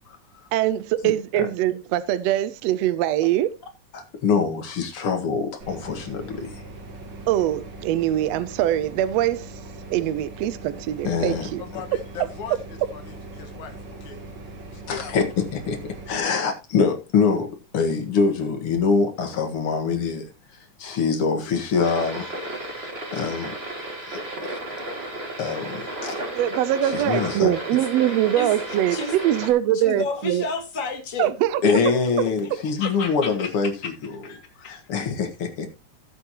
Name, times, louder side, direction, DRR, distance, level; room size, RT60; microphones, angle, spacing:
voice 1, 0.5-3.6 7.3-9.5 9.9-11.6 26.3-30.4 31.2-31.6, right 12 dB, 75° right, 1.7 m, -23 dB
voice 2, 3.9-6.5 11.0-11.5 14.9-15.8 16.1-20.3 20.8-22.4 23.1-23.5 24.1-24.6 25.4-26.2 26.8-27.5 31.6-34.2 34.7-35.7, left 5 dB, 50° left, 2.4 m, -24 dB
sound 1, 5.6-16.2, right 2 dB, 45° right, 2.1 m, -40 dB
voice 3, 11.6-12.6 12.9-13.0 13.3-14.2 14.7-15.2, left 7 dB, 75° left, 2.9 m, -38 dB
sound 2, 21.8-29.5, right 1 dB, 20° right, 2.2 m, -33 dB
voice 4, 29.7-31.3 31.7-31.8 32.8-33.5 34.2-34.8, left 3 dB, 30° left, 2.2 m, -30 dB
15.5 x 7.6 x 3.0 m
omnidirectional pair, 3.4 m